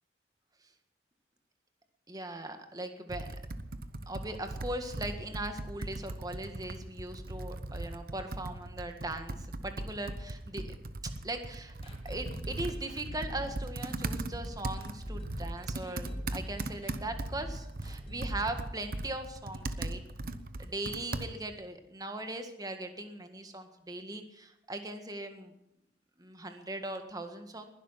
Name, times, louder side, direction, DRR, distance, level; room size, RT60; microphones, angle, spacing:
voice 1, 2.1-3.3 4.1-10.8 11.2-11.7 12.0-20.0 20.6-25.5 26.2-27.7, right 2 dB, 20° right, 6 dB, 1.7 m, -39 dB
Computer keyboard, 3.1-21.6, right 2 dB, 55° right, 1.0 m, -39 dB
sound 1, 11.8-19.6 19.8-19.9 20.3-20.4, equal, 35° left, 2.9 m, -42 dB
21.0 x 12.0 x 5.8 m, 0.84 s
head